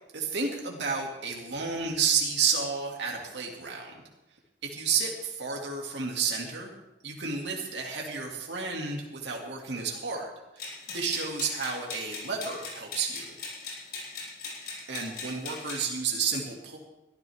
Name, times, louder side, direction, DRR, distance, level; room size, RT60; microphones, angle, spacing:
voice 1, 0.1-3.9 4.6-6.7 7.0-10.3 10.6-10.7 10.9-13.3 14.9-16.8, right 5 dB, 80° right, 0 dB, 2.4 m, -31 dB
sound 1, 10.6-15.8, left 4 dB, 60° left, 7.7 m, -39 dB
23.5 x 14.5 x 3.6 m, 0.96 s
head